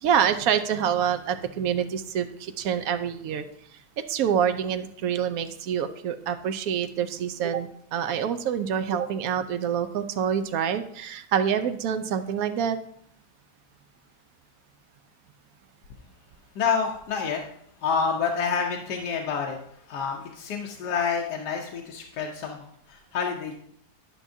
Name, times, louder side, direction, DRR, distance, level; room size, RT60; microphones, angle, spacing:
voice 1, 0.0-3.4 4.1-12.8, right 8 dB, 70° right, 10 dB, 0.9 m, -26 dB
voice 2, 16.5-17.4 17.8-19.6 19.9-23.6, left 6 dB, 85° left, 0 dB, 1.4 m, -28 dB
11.5 x 6.0 x 2.7 m, 0.68 s
omnidirectional pair, 1.8 m